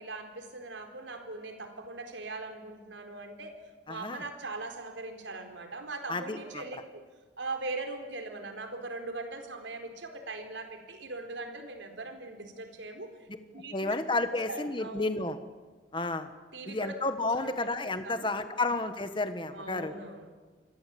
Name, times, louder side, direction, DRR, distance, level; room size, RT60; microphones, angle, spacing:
voice 1, 0.0-3.5 3.9-7.0 7.4-13.1 13.5-14.0 14.3-15.3 16.5-17.0 17.2-17.5 17.8-18.5 19.5-20.3, right 2 dB, 80° right, 5 dB, 4.3 m, -40 dB
voice 2, 3.9-4.2 6.1-6.6 13.7-15.4 15.9-16.3 16.6-19.9, left 2 dB, 25° left, 9 dB, 1.4 m, -31 dB
28.5 x 22.5 x 8.6 m, 1.4 s
head